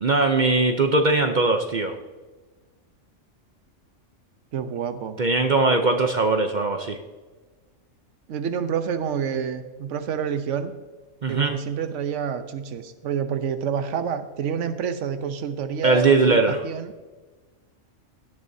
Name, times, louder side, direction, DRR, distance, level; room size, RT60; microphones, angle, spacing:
voice 1, 0.0-1.9 5.2-7.0 11.2-11.6 15.8-16.6, right 3 dB, 45° right, 5 dB, 0.7 m, -20 dB
voice 2, 4.5-5.2 8.3-10.7 11.3-16.9, right 7 dB, 70° right, 9 dB, 1.1 m, -28 dB
17.0 x 9.7 x 2.7 m, 1.3 s
omnidirectional pair, 1.3 m